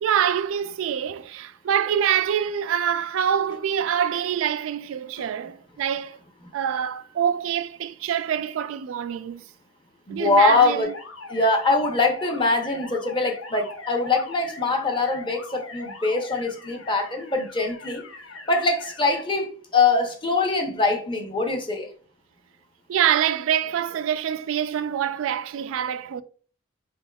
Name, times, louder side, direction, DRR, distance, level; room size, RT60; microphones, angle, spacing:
voice 1, 0.0-6.2 6.5-9.4 10.1-10.9 22.9-26.2, right 9 dB, 80° right, 0.3 m, -25 dB
voice 2, 10.1-10.9 11.3-18.0 18.5-21.9, left 3 dB, 25° left, 0.6 m, -23 dB
sound 1, 10.8-19.2, left 3 dB, 85° left, 0.8 m, -41 dB
5.1 x 3.5 x 2.3 m
head